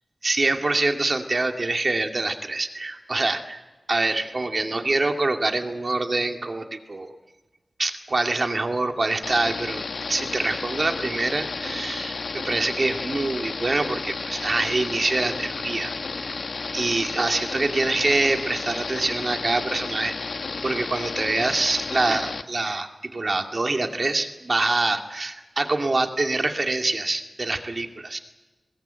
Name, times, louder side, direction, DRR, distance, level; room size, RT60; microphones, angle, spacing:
voice 1, 0.2-3.6 3.9-7.2 7.8-9.8 10.1-15.9 16.7-20.1 20.6-28.2, right 2 dB, 45° right, 5 dB, 2.3 m, -25 dB
sound 1, 9.2-22.4, left 4 dB, 85° left, 1.3 m, -32 dB
22.0 x 20.5 x 9.1 m, 1.2 s
wide cardioid pair, 90°, 0 cm